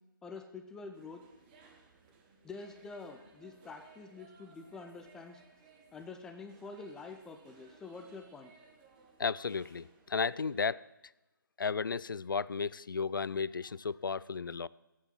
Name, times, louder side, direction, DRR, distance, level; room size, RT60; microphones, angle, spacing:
voice 1, 0.2-1.2 2.4-5.4 5.9-8.5, left 4 dB, 5° left, 0.4 m, -47 dB
sound 1, 0.9-10.6, right 5 dB, 25° right, 1.4 m, -61 dB
voice 2, 9.2-10.8 11.6-14.7, left 5 dB, 70° left, 0.4 m, -34 dB
11.0 x 8.4 x 7.4 m
figure-of-eight pair, 145°, 11 cm